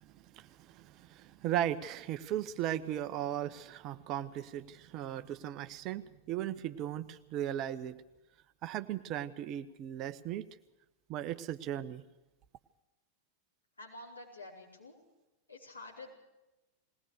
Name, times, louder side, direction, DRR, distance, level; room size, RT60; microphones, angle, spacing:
voice 1, 0.0-8.0 8.6-10.5 11.1-12.0, right 11 dB, 35° right, 10 dB, 0.9 m, -37 dB
voice 2, 13.8-15.0 15.5-16.1, left 2 dB, 80° left, -3 dB, 5.1 m, -48 dB
21.0 x 18.5 x 6.6 m, 1.0 s
figure-of-eight pair, 90°, 0 cm